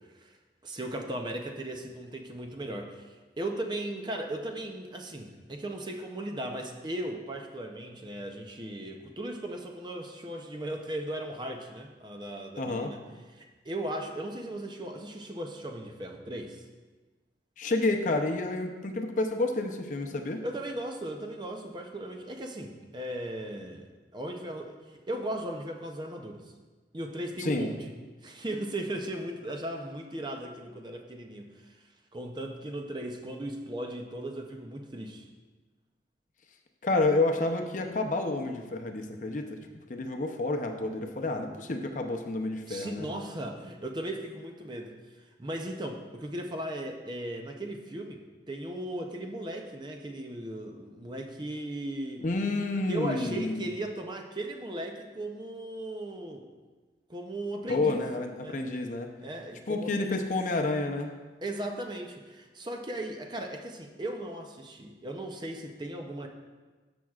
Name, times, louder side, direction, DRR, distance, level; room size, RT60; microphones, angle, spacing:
voice 1, 0.6-3.1 3.4-13.0 13.3-16.6 20.4-24.8 25.1-26.4 26.9-27.8 28.2-31.8 32.1-35.3 42.7-44.9 45.4-52.2 52.9-56.5 57.1-58.0 58.4-58.6 59.2-60.2 61.4-66.3, right 1 dB, 25° right, 3 dB, 0.6 m, -37 dB
voice 2, 12.6-12.9 17.6-20.4 27.4-27.7 36.8-43.1 52.2-53.7 57.7-59.1 59.7-61.1, left 2 dB, 45° left, 4 dB, 0.6 m, -29 dB
13.5 x 6.1 x 2.4 m, 1.3 s
head